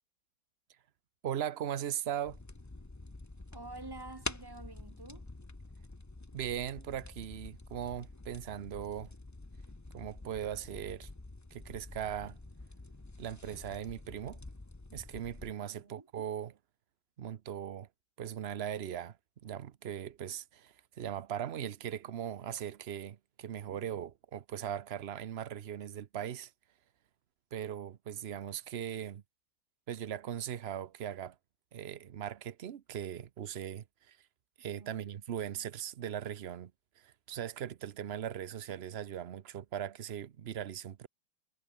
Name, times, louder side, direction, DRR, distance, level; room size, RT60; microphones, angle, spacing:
voice 1, 1.2-2.4 6.3-9.1 9.9-11.1 11.5-12.4 13.2-14.4 14.9-16.6 17.2-17.9 18.2-19.2 19.4-26.5 27.5-29.2 29.9-31.4 31.7-34.2 34.6-36.7 37.0-41.1, right 10 dB, 70° right, 0.6 m, -39 dB
sound 1, 2.2-15.5, left 2 dB, 20° left, 0.5 m, -48 dB
voice 2, 3.5-5.3 15.7-16.1 34.6-35.1, right 2 dB, 15° right, 1.2 m, -49 dB
omnidirectional pair, 2.1 m